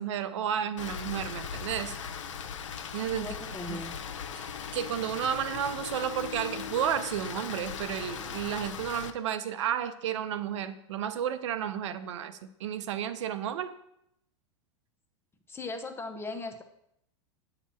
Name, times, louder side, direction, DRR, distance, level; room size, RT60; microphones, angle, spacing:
voice 1, 0.0-2.0 2.9-3.3 4.4-4.5 4.7-13.8, right 9 dB, 75° right, 11 dB, 0.5 m, -32 dB
Rain, 0.8-9.1, left 7 dB, 85° left, 0.5 m, -38 dB
voice 2, 3.1-4.0 15.5-16.6, left 2 dB, 15° left, 6 dB, 0.8 m, -38 dB
8.1 x 2.9 x 5.9 m, 0.77 s
hypercardioid pair, 105°, 16 cm